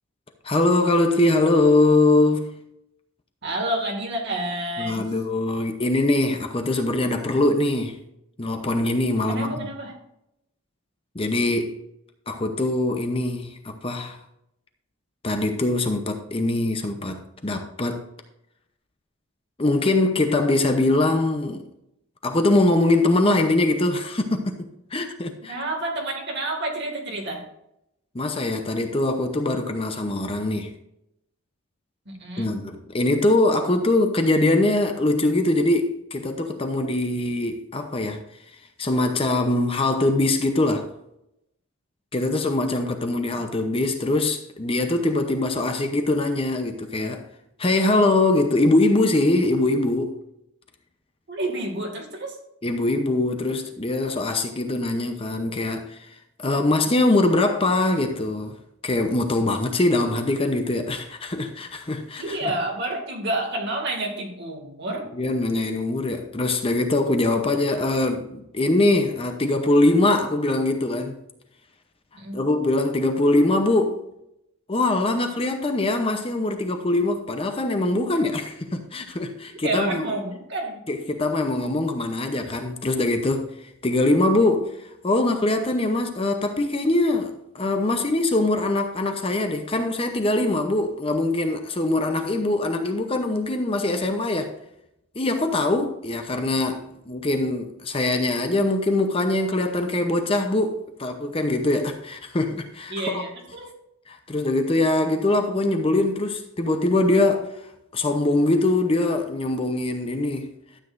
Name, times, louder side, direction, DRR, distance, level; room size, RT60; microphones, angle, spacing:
voice 1, 0.4-2.6 4.8-8.0 8.4-9.7 11.1-11.8 12.3-14.2 15.2-18.0 19.6-21.6 22.2-25.6 28.1-30.7 32.4-38.2 38.8-40.9 42.1-47.2 47.6-50.1 52.6-56.1 56.4-58.5 58.8-62.4 65.1-71.2 72.3-74.0 74.7-80.0 80.9-83.5 83.8-84.8 85.0-94.5 95.2-103.2 104.1-107.7 107.9-110.5, left 2 dB, 25° left, 0.7 m, -22 dB
voice 2, 3.4-5.1 9.3-9.9 25.5-27.4 32.1-32.5 51.3-52.3 62.2-65.1 72.1-72.4 79.5-80.8 102.9-103.7, right 1 dB, 55° right, 2.2 m, -29 dB
12.5 x 8.3 x 2.6 m
head